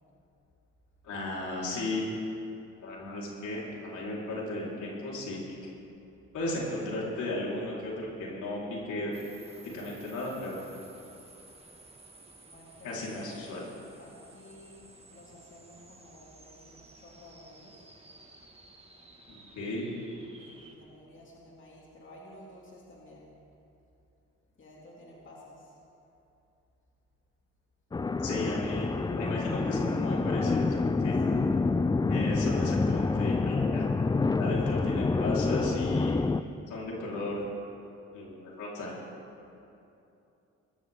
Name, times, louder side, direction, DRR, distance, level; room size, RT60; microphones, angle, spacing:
voice 1, 1.0-2.0 2.8-5.7 6.3-8.6 8.9-9.1 9.7-10.6 12.8-13.6 19.3-19.9 28.2-30.7 31.0-31.2 32.1-33.8 34.4-36.2 36.7-37.4 38.1-38.9, left 2 dB, 75° left, -5 dB, 4.3 m, -35 dB
sound 1, 9.1-20.8, right 2 dB, 20° right, 1.9 m, -54 dB
voice 2, 12.4-13.3 14.0-17.8 20.3-23.3 24.6-25.8 31.3-31.5, left 1 dB, 40° left, -4 dB, 2.7 m, -52 dB
sound 2, 27.9-36.4, left 3 dB, 15° left, 0.4 m, -27 dB
20.0 x 14.5 x 3.7 m, 2.8 s
cardioid pair, 90°, 30 cm